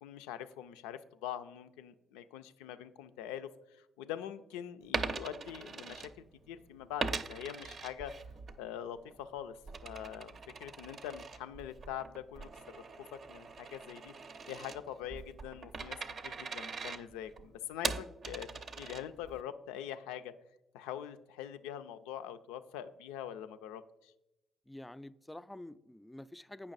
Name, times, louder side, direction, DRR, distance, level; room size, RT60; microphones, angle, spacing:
voice 1, 0.0-8.1 8.6-12.8 13.1-14.1 14.5-16.0 16.2-20.3 20.7-24.1, left 10 dB, 85° left, 0.4 m, -44 dB
Coin (dropping), 4.8-6.5 7.0-8.6 9.0-19.4, right 4 dB, 55° right, 0.6 m, -41 dB
voice 2, 24.7-26.7, left 1 dB, 10° left, 0.4 m, -48 dB
8.8 x 5.8 x 4.0 m
hypercardioid pair, 55°, 0 cm